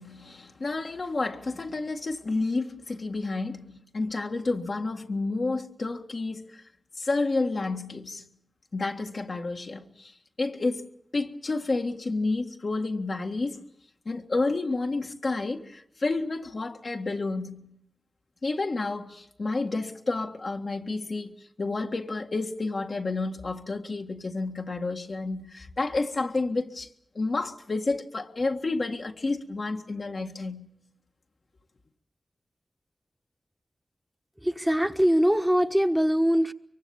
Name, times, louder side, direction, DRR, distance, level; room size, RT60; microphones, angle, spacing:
voice 1, 0.0-6.6 7.0-8.3 8.7-10.1 10.4-10.8 11.1-13.7 14.1-17.8 18.4-21.3 21.6-26.9 27.2-30.7, left 3 dB, 65° left, 1.8 m, -30 dB
voice 2, 34.4-36.5, equal, 10° right, 1.3 m, -22 dB
24.0 x 23.5 x 7.3 m
cardioid pair, 40°, 0 cm